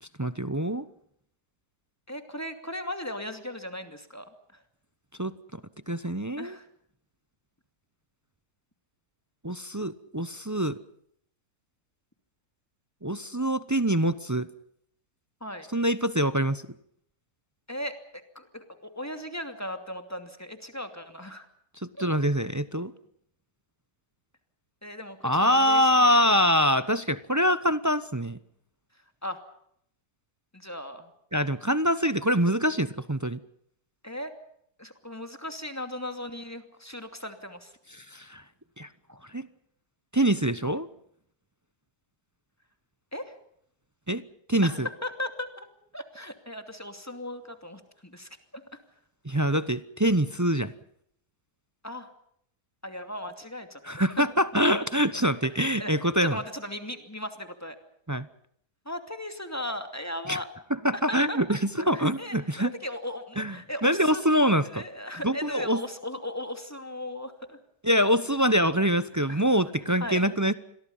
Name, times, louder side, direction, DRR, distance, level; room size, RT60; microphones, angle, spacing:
voice 1, 0.0-0.9 5.2-5.6 5.9-6.6 9.4-10.8 13.0-14.5 15.7-16.6 21.8-22.9 25.2-28.4 31.3-33.4 37.9-38.4 38.8-39.5 40.1-40.9 44.1-44.2 44.5-44.9 49.2-50.7 53.8-56.4 58.1-58.3 60.3-60.4 60.7-62.7 63.4-64.8 65.2-65.8 67.8-70.5, equal, 20° right, 14 dB, 0.4 m, -25 dB
voice 2, 2.1-4.3 6.4-6.7 15.4-15.7 17.7-21.5 21.9-22.1 24.8-26.2 29.2-29.4 30.5-31.1 34.0-34.3 34.8-37.7 43.1-43.3 44.6-45.7 45.9-48.6 51.8-52.1 52.8-54.2 55.6-55.9 56.2-57.8 58.9-60.5 61.1-61.4 61.8-67.6 69.3-69.4 70.0-70.2, left 1 dB, 10° left, 7 dB, 2.6 m, -37 dB
28.5 x 22.0 x 5.6 m, 0.70 s
omnidirectional pair, 1.7 m